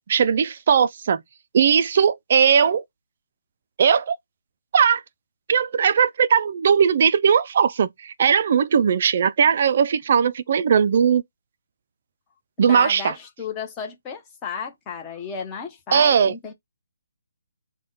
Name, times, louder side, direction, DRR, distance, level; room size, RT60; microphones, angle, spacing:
voice 1, 0.1-1.2 1.5-2.8 3.8-4.2 4.7-5.0 5.5-11.2 12.6-13.1 15.9-16.3, right 7 dB, 40° right, 0.3 m, -18 dB
voice 2, 12.6-16.5, left 6 dB, 15° left, 0.8 m, -34 dB
3.5 x 2.2 x 3.9 m
hypercardioid pair, 165°, 0 cm